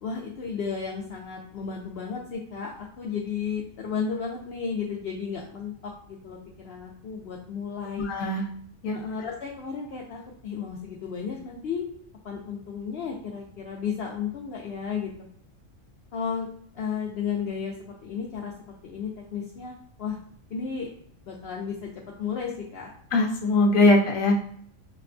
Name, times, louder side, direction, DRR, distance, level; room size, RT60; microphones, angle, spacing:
voice 1, 0.0-8.1 8.9-11.9 12.2-15.1 16.1-16.5 16.7-18.5 18.8-20.2 20.5-20.9 21.3-21.9 22.2-22.9, left 6 dB, 60° left, -1 dB, 0.7 m, -33 dB
voice 2, 8.0-8.4 8.8-8.9 23.1-24.3, left 2 dB, 85° left, 1 dB, 1.0 m, -20 dB
5.9 x 2.2 x 2.5 m, 0.63 s
omnidirectional pair, 1.4 m